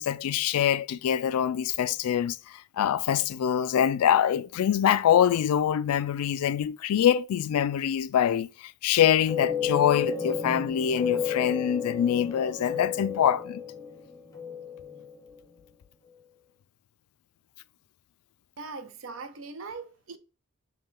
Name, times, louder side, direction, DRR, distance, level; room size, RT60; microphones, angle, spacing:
voice 1, 0.0-13.6, left 9 dB, 85° left, 0.3 m, -24 dB
sound 1, 9.3-15.4, left 6 dB, 15° left, 0.7 m, -32 dB
voice 2, 18.6-20.2, right 4 dB, 60° right, 0.6 m, -40 dB
5.3 x 2.2 x 3.6 m
head